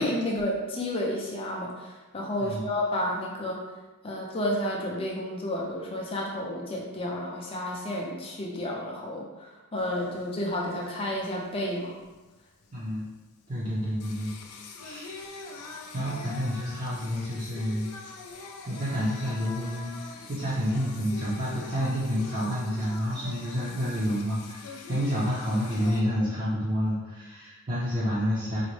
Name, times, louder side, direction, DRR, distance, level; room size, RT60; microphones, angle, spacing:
voice 1, 0.0-3.6 4.0-12.0, left 1 dB, 25° left, -2 dB, 0.5 m, -31 dB
Singing, 9.8-26.0, left 3 dB, 80° left, 0.4 m, -44 dB
voice 2, 12.7-13.1 13.5-14.3 14.6-15.4 15.9-17.9 18.6-28.6, equal, 35° right, -9 dB, 0.6 m, -29 dB
3.9 x 2.1 x 3.1 m, 1.2 s
head